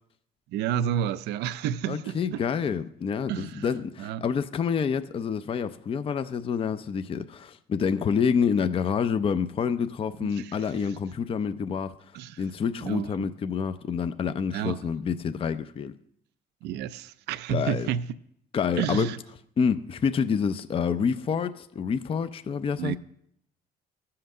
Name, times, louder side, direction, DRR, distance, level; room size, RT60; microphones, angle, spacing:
voice 1, 0.5-2.4 3.3-4.2 10.2-10.9 12.1-12.4 12.8-13.3 14.5-14.8 16.6-18.0 18.8-19.2 22.8-23.0, right 9 dB, 80° right, 0.5 m, -31 dB
voice 2, 1.9-12.0 12.4-15.9 17.5-17.9 18.5-19.1 19.6-23.0, left 6 dB, 35° left, 0.5 m, -27 dB
14.5 x 5.8 x 6.5 m
cardioid pair, 110°, 17 cm